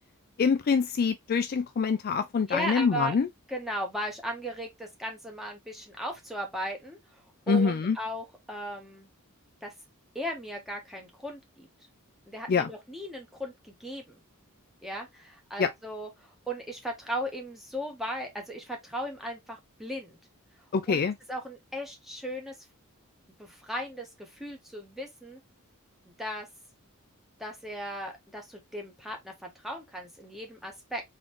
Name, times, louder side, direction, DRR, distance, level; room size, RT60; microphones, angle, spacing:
voice 1, 0.4-3.3 7.5-8.0 12.5-12.7 15.6-15.7 20.7-21.1, left 5 dB, 45° left, 0.4 m, -25 dB
voice 2, 2.5-3.1 3.5-7.0 7.5-9.1 9.6-9.7 10.1-11.7 12.3-14.2 14.8-16.1 16.5-20.2 20.9-21.0 21.3-22.5 23.4-25.4 26.2-26.5 27.4-31.0, equal, ahead, 1.3 m, -36 dB
3.8 x 3.2 x 3.2 m
head